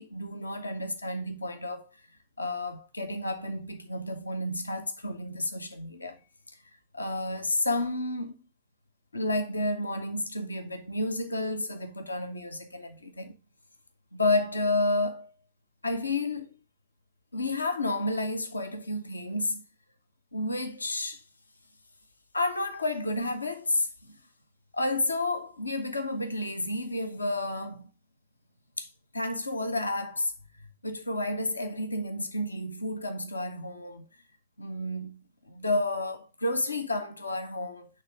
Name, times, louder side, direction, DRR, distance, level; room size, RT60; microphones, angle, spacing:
voice 1, 0.0-1.9 2.4-6.2 6.9-8.3 9.1-13.4 14.1-15.3 15.8-16.5 17.3-19.6 20.3-21.2 22.3-23.9 24.7-27.9 28.8-28.9 29.1-30.3 30.8-34.1 34.6-37.9, left 2 dB, 80° left, 0.6 m, -31 dB
9.3 x 3.3 x 3.7 m
figure-of-eight pair, 90°, 0 cm